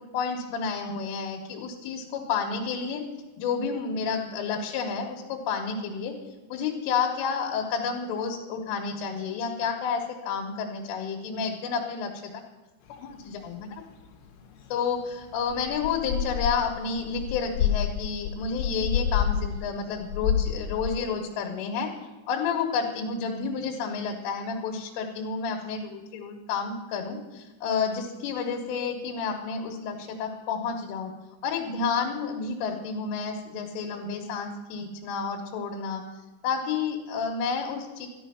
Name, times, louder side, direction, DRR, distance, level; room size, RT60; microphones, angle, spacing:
voice 1, 0.1-3.0 3.4-6.1 6.5-12.3 12.9-13.8 14.7-21.9 22.3-31.1 31.4-36.0 36.4-38.1, left 5 dB, 85° left, -1 dB, 3.8 m, -30 dB
sound 1, 12.9-19.7 20.0-21.0, left 9 dB, 65° left, 3.2 m, -29 dB
13.0 x 11.5 x 5.8 m, 1.2 s
omnidirectional pair, 5.7 m